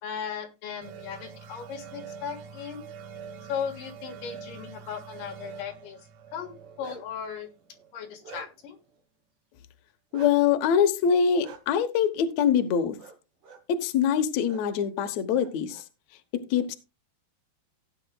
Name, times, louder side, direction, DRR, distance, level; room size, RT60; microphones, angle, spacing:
voice 1, 0.0-2.8 3.5-6.0 6.3-7.5 7.9-8.8, left 7 dB, 60° left, 3 dB, 2.9 m, -37 dB
sound 1, 0.8-8.1, right 7 dB, 80° right, 1.6 m, -45 dB
Bark, 6.5-7.2 7.7-8.8 10.1-10.3 11.4-11.6 13.0-13.2 13.4-13.6 14.4-14.6 15.0-15.8, right 6 dB, 60° right, 1.5 m, -46 dB
voice 2, 10.1-13.0 13.7-15.8 16.5-16.8, left 7 dB, 85° left, 8 dB, 1.5 m, -24 dB
16.5 x 9.0 x 2.3 m, 0.26 s
omnidirectional pair, 4.9 m